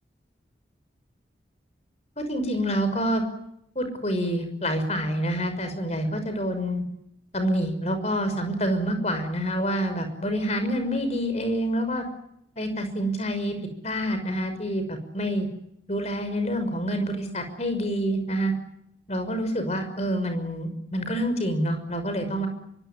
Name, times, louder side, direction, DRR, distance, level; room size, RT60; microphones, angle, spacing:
voice 1, 2.2-3.2 3.8-6.8 7.3-12.1 12.6-13.5 13.8-15.5 15.9-18.5 19.1-22.5, equal, 40° left, 8 dB, 6.0 m, -27 dB
24.5 x 24.5 x 10.0 m, 0.76 s
head